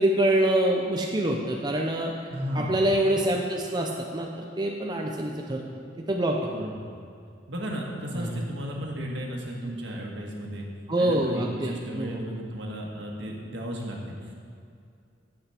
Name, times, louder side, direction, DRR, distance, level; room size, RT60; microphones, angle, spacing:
voice 1, 0.0-2.3 2.5-5.6 6.1-6.4 8.1-8.4 10.9-12.2, right 1 dB, 25° right, 0 dB, 0.6 m, -25 dB
voice 2, 2.3-2.9 6.5-6.9 7.5-10.7 11.0-14.3, equal, 70° right, -1 dB, 1.6 m, -34 dB
9.9 x 7.9 x 4.4 m, 2.4 s
head